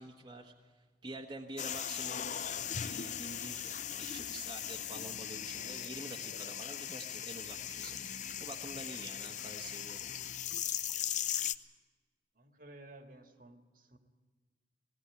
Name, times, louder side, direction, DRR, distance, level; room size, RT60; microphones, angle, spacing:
voice 1, 0.0-2.3 2.8-8.1 8.4-10.2, right 2 dB, 25° right, 0 dB, 1.4 m, -47 dB
sound 1, 1.6-11.5, left 9 dB, 40° left, 0.6 m, -39 dB
voice 2, 12.3-14.0, right 1 dB, 50° right, 6 dB, 1.8 m, -54 dB
19.0 x 17.5 x 9.6 m, 1.4 s
head